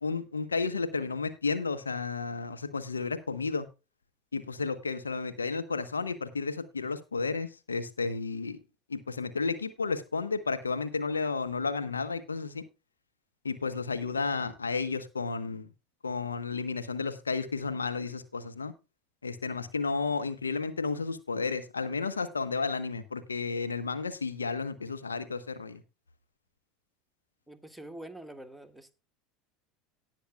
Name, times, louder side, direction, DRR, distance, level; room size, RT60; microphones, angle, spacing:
voice 1, 0.0-3.7 4.3-8.6 8.9-12.6 13.4-15.7 16.0-18.7 19.2-25.8, left 4 dB, 85° left, 10 dB, 1.1 m, -32 dB
voice 2, 27.5-28.9, right 1 dB, ahead, 6 dB, 1.5 m, -45 dB
18.5 x 6.6 x 2.3 m, 0.29 s
figure-of-eight pair, 75°, 0 cm